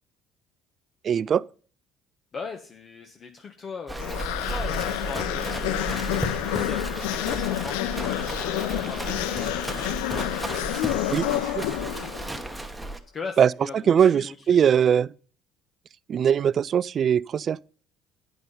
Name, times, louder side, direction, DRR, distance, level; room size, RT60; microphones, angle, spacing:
voice 1, 1.0-1.4 11.1-11.3 11.6-11.7 13.4-15.1 16.1-17.6, right 8 dB, 50° right, 0.3 m, -21 dB
voice 2, 2.3-10.1 10.8-11.8 13.1-14.8, left 5 dB, 40° left, 1.1 m, -40 dB
Livestock farm animals working animals, 3.9-13.0, right 1 dB, 10° right, 1.2 m, -33 dB
sound 1, 4.0-12.5, left 14 dB, 85° left, 0.4 m, -29 dB
9.3 x 5.9 x 5.4 m
supercardioid pair, 75°, 0 cm